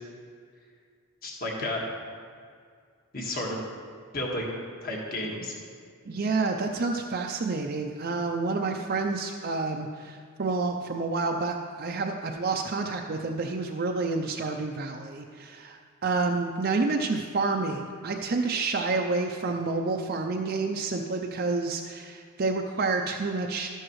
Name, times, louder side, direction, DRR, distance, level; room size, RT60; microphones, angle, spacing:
voice 1, 1.2-1.9 3.1-3.6 4.1-4.6 4.8-5.5, left 1 dB, 45° left, -2 dB, 1.7 m, -32 dB
voice 2, 6.1-23.7, right 3 dB, 45° right, 2 dB, 0.5 m, -29 dB
12.5 x 11.0 x 3.1 m, 2.1 s
head